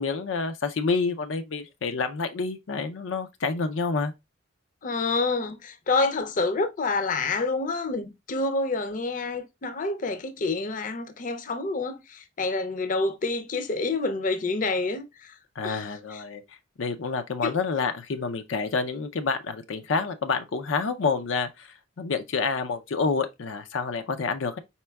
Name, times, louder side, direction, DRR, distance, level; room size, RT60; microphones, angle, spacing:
voice 1, 0.0-4.1 15.6-16.4 16.8-21.7 22.0-24.6, left 4 dB, 90° left, 0.5 m, -28 dB
voice 2, 4.8-15.3 15.6-16.2 17.4-17.5, left 3 dB, 45° left, 0.5 m, -28 dB
4.3 x 4.3 x 2.2 m
head